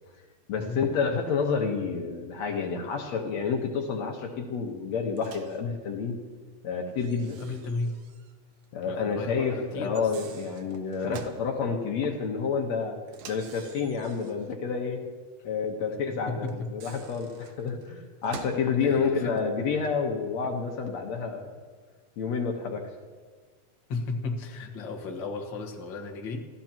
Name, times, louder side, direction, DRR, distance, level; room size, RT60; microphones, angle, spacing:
voice 1, 0.5-6.2 6.6-7.4 8.7-13.0 13.3-15.0 15.4-21.5 22.2-22.9, left 5 dB, 65° left, 2 dB, 2.4 m, -29 dB
Microwave oven, 5.2-5.6 7.0-8.4 8.6-8.7 9.8-11.5 13.1-14.5 16.5-18.7, right 6 dB, 65° right, 2.1 m, -46 dB
voice 2, 7.4-7.9 8.8-10.1 16.3-16.7 18.8-19.3 23.9-26.5, left 3 dB, 45° left, 1 dB, 1.9 m, -34 dB
28.0 x 15.0 x 3.0 m, 1.5 s
omnidirectional pair, 3.5 m